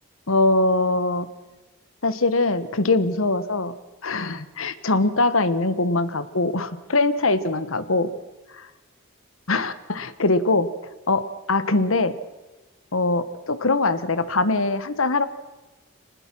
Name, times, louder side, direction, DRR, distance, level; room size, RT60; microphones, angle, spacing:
voice 1, 0.3-1.3 2.0-3.8 4.0-8.1 8.5-8.7 9.5-10.7 11.1-12.2 12.9-15.3, left 2 dB, 75° left, 13 dB, 1.3 m, -22 dB
25.0 x 19.5 x 6.1 m, 1.2 s
head